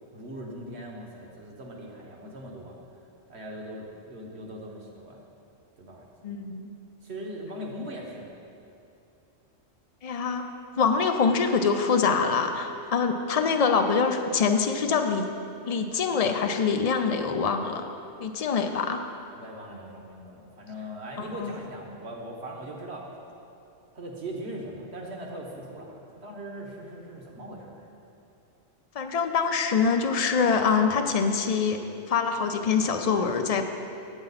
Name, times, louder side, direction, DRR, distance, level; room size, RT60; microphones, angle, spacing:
voice 1, 0.1-2.8 3.3-5.2 5.8-6.1 7.0-8.3 19.4-23.1 23.9-27.9, right 1 dB, 65° right, 0 dB, 1.5 m, -40 dB
voice 2, 6.2-6.7 10.0-10.5 10.8-15.3 15.7-17.9 18.2-19.0 21.2-21.5 28.9-31.8 32.1-33.6, left 5 dB, 55° left, 6 dB, 0.4 m, -24 dB
8.9 x 8.6 x 4.0 m, 2.7 s
omnidirectional pair, 1.2 m